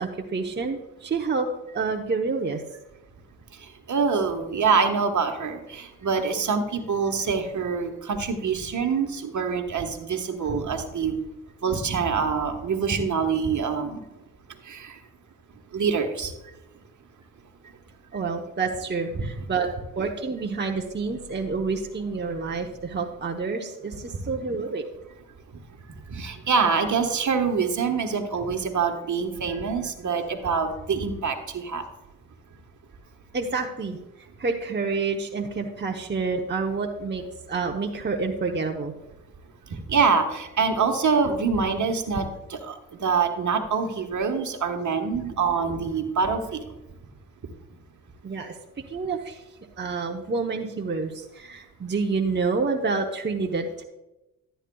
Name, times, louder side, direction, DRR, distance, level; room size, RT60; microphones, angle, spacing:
voice 1, 0.0-1.5 1.7-2.6 18.1-19.7 20.0-24.8 33.3-34.0 34.4-38.9 45.5-45.6 48.2-49.4 49.8-53.8, right 4 dB, 30° right, 2 dB, 1.0 m, -28 dB
voice 2, 3.9-11.2 11.6-14.0 14.7-14.9 15.7-16.3 19.1-19.2 26.1-31.8 39.9-42.2 42.5-42.7 43.0-46.6, right 5 dB, 50° right, 5 dB, 1.4 m, -25 dB
12.5 x 9.1 x 2.3 m, 0.98 s
supercardioid pair, 55°, 37 cm